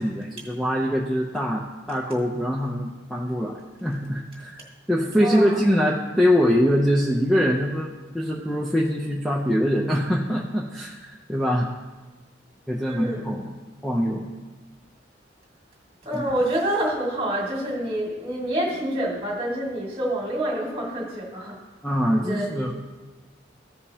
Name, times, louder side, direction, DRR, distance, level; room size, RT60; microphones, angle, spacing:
voice 1, 0.0-4.6 4.9-11.7 12.7-13.5 13.8-14.3 16.1-16.3 21.8-22.7, equal, ahead, -3 dB, 0.6 m, -23 dB
voice 2, 5.2-5.6 12.8-13.3 16.0-21.6 22.1-22.7, right 1 dB, 30° right, -2 dB, 2.0 m, -27 dB
15.5 x 5.1 x 2.8 m, 1.2 s
head